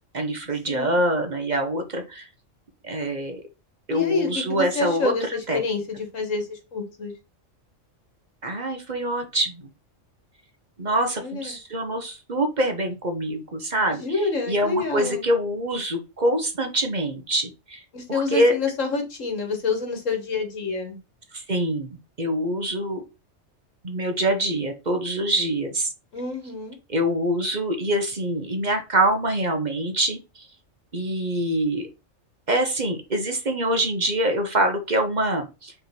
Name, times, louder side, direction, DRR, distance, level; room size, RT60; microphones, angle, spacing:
voice 1, 0.1-2.3 2.8-3.4 3.9-5.6 8.4-9.7 10.8-17.8 18.1-18.5 21.3-23.0 23.8-25.9 26.9-30.5 30.9-31.9 32.5-35.7, right 1 dB, 40° right, 5 dB, 1.1 m, -25 dB
voice 2, 0.7-1.0 3.9-7.1 11.1-11.6 14.0-15.3 17.9-21.0 26.1-26.8, left 4 dB, 75° left, 5 dB, 2.1 m, -28 dB
5.7 x 3.7 x 5.8 m, 0.29 s
omnidirectional pair, 1.3 m